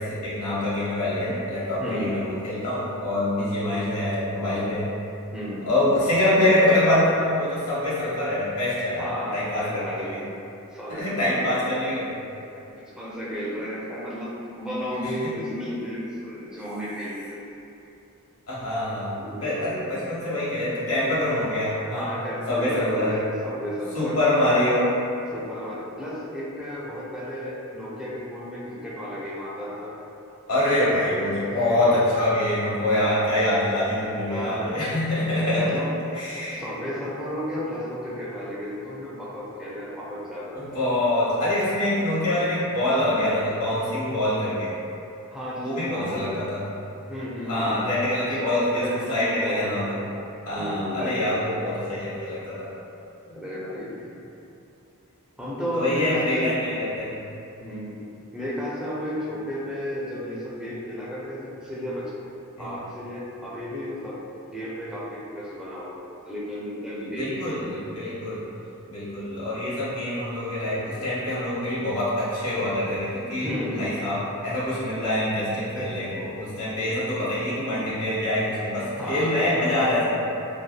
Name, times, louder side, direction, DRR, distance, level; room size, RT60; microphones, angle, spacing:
voice 1, 0.0-4.9 5.6-10.2 10.9-12.2 15.0-15.3 18.5-22.1 22.5-23.2 23.9-25.0 30.5-35.8 36.1-36.6 40.5-44.7 45.6-46.7 47.5-49.9 50.5-52.7 55.7-57.2 62.6-62.7 67.2-68.5 68.9-73.5 73.8-80.2, left 1 dB, 80° left, -10 dB, 1.0 m, -25 dB
voice 2, 1.8-2.3 5.3-5.7 9.0-10.1 10.7-11.8 12.7-17.5 19.2-19.8 21.9-24.2 25.3-29.9 30.8-31.0 31.5-31.9 34.1-34.9 35.6-36.0 36.5-40.6 45.3-46.3 47.1-47.9 48.3-48.4 48.8-50.1 50.5-51.5 53.2-54.1 55.4-56.5 57.6-58.0 58.3-62.1 62.6-67.8 73.4-73.8 75.7-75.9 79.0-79.4, equal, 5° right, -8 dB, 0.5 m, -33 dB
2.7 x 2.2 x 2.2 m, 2.8 s
head